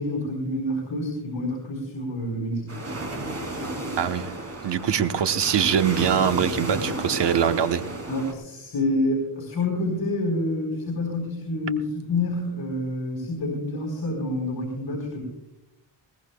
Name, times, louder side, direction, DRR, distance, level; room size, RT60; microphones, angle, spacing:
voice 1, 0.0-2.7 8.1-15.2, left 1 dB, 50° left, -1 dB, 4.2 m, -28 dB
sound 1, 2.7-8.3, right 1 dB, 35° right, 3.0 m, -33 dB
voice 2, 4.0-4.3 4.6-7.8, right 8 dB, 65° right, 8 dB, 1.0 m, -23 dB
21.0 x 18.0 x 2.3 m, 0.90 s
wide cardioid pair, 145°, 45 cm